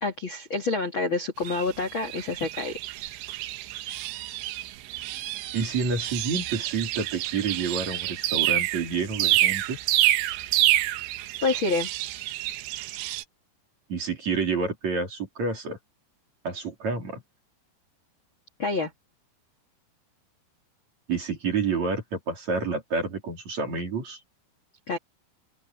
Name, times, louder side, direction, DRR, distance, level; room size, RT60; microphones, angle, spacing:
voice 1, 0.0-2.8 11.4-11.9 18.6-18.9 24.9-25.0, left 3 dB, 40° left, 2.0 m, -27 dB
sound 1, 1.5-13.2, right 15 dB, 85° right, 3.4 m, -28 dB
voice 2, 5.5-9.8 13.9-15.8 16.4-17.2 21.1-24.2, right 4 dB, 40° right, 4.7 m, -29 dB
open air
omnidirectional pair, 5.4 m